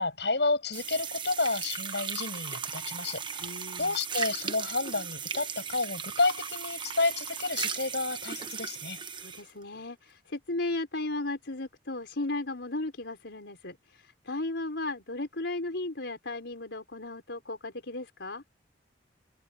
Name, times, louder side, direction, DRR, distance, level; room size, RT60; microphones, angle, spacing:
voice 1, 0.0-3.5 3.8-9.0, left 3 dB, 70° left, 7.4 m, -30 dB
sound 1, 0.7-9.5, right 6 dB, 25° right, 1.1 m, -37 dB
voice 2, 3.4-4.0 9.1-18.4, left 2 dB, 85° left, 4.0 m, -35 dB
open air
head